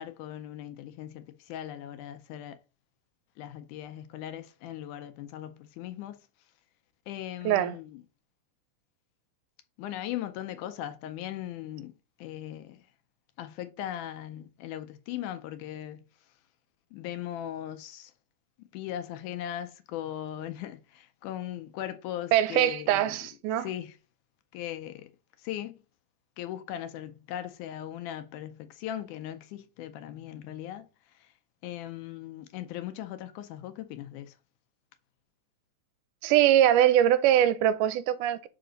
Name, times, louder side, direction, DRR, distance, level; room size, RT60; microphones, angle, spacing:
voice 1, 0.0-2.6 3.4-6.3 7.1-8.0 9.8-12.9 13.4-16.1 16.9-18.1 18.7-23.2 23.6-24.0 24.5-25.1 25.4-25.8 26.4-31.3 31.6-34.4, left 12 dB, 80° left, 1.9 m, -39 dB
voice 2, 22.3-23.7 36.2-38.5, right 11 dB, 80° right, 2.1 m, -22 dB
5.7 x 5.0 x 3.8 m
omnidirectional pair, 3.7 m